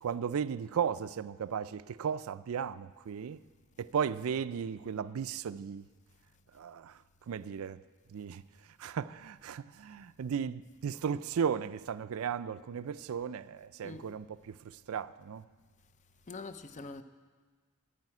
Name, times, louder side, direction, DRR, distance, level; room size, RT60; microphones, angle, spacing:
voice 1, 0.0-3.4 3.8-5.9 6.5-6.9 7.3-7.8 8.1-8.4 8.8-15.4, right 7 dB, 70° right, 0.4 m, -35 dB
voice 2, 16.3-17.0, left 3 dB, 35° left, 0.6 m, -43 dB
11.0 x 9.1 x 9.6 m
head